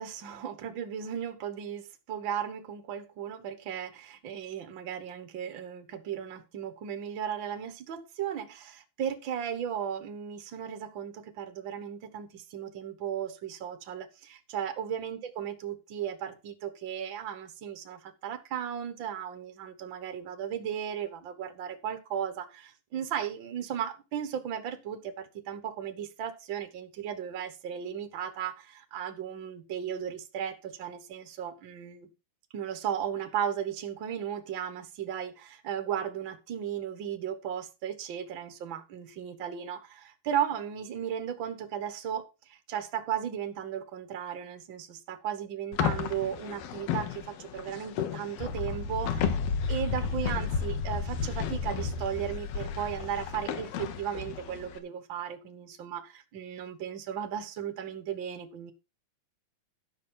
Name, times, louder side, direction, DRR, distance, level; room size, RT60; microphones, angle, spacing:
voice 1, 0.0-32.1 32.5-49.4 49.7-58.7, right 9 dB, 60° right, 1.2 m, -36 dB
sound 1, 45.7-54.8, left 10 dB, 90° left, 3.0 m, -36 dB
sound 2, 48.4-53.5, left 4 dB, 65° left, 2.1 m, -33 dB
12.5 x 5.6 x 5.6 m
omnidirectional pair, 4.1 m